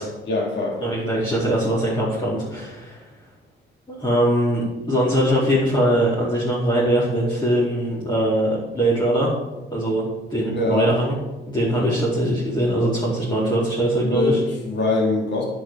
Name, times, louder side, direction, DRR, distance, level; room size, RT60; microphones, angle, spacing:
voice 1, 0.3-1.0 10.4-10.9 11.8-11.9 14.0-15.4, left 2 dB, 60° left, -1 dB, 4.3 m, -23 dB
voice 2, 0.8-3.0 3.9-9.3 9.7-10.0 10.3-11.2 11.5-14.4, right 1 dB, 20° left, -8 dB, 4.8 m, -21 dB
10.0 x 8.8 x 7.2 m, 1.1 s
cardioid pair, 90°, 20 cm